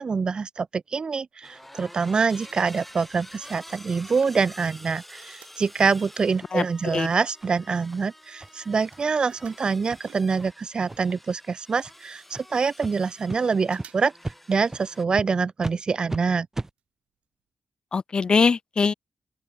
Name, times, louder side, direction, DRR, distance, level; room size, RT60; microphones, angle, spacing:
voice 1, 0.0-14.1 14.5-16.5, right 5 dB, 45° right, 0.4 m, -25 dB
sound 1, 1.4-15.0, left 1 dB, 5° left, 1.6 m, -48 dB
sound 2, 1.4-2.1 2.4-6.3 6.9-7.0 7.2-10.8 11.1-11.2 11.3-11.4 12.0-12.1 12.4-13.3 13.6-14.2 14.5-14.6 15.6-15.9 16.2-16.3 16.8-16.9 17.2-17.3, right 10 dB, 80° right, 5.4 m, -56 dB
sound 3, 6.4-6.5 6.9-7.0 7.4-7.5 7.9-8.0 8.4-8.5 8.9-9.0 9.4-9.5 9.9-10.0 10.4-10.5 10.9-11.2 11.8-11.9 12.3-12.4 12.8-12.9 13.3-13.4 13.8-13.9 14.2-14.4 14.7-14.8 15.2-15.3 15.6-15.8 16.1-16.2 16.5-16.7, right 2 dB, 20° right, 1.0 m, -35 dB
voice 2, 6.5-7.1 17.9-18.9, left 5 dB, 45° left, 0.6 m, -22 dB
open air
cardioid pair, 60°, 2 cm